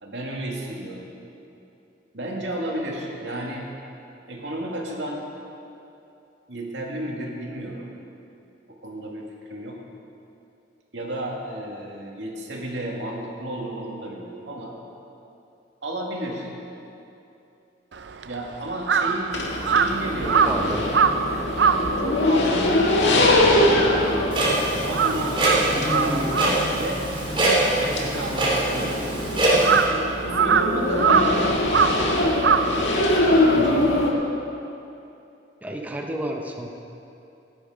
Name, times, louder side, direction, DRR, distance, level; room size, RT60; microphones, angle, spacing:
voice 1, 0.0-1.1 2.1-3.7 4.3-5.3 6.5-7.9 8.8-9.8 10.9-14.7 15.8-16.5 18.3-20.7 22.0-22.9 24.7-26.4 26.7-27.0 27.8-29.0 29.4-29.5 30.2-32.3 32.9-34.1, right 1 dB, 90° right, -1 dB, 2.3 m, -32 dB
Crow, 17.9-24.5 24.8-33.4, right 6 dB, 70° right, 0.6 m, -24 dB
sound 1, 19.3-34.1, left 1 dB, 80° left, 1.8 m, -23 dB
voice 2, 20.4-20.8 35.6-36.7, right 1 dB, 10° right, 1 dB, 0.9 m, -31 dB
Clock, 24.3-29.8, right 1 dB, 30° right, 3.2 m, -23 dB
17.0 x 10.5 x 5.1 m, 2.8 s
head